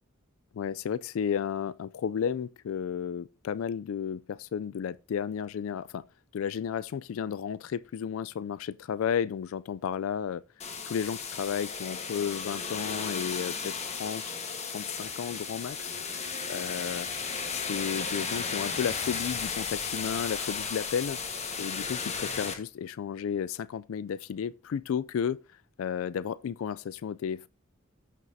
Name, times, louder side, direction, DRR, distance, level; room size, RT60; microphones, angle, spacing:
voice 1, 0.5-6.0 6.3-10.4 10.9-15.9 16.5-17.1 17.5-21.2 21.6-25.4 25.8-27.5, left 7 dB, 70° left, 0.3 m, -33 dB
sound 1, 10.6-22.5, left 5 dB, 30° left, 1.3 m, -34 dB
15.0 x 5.9 x 2.7 m
head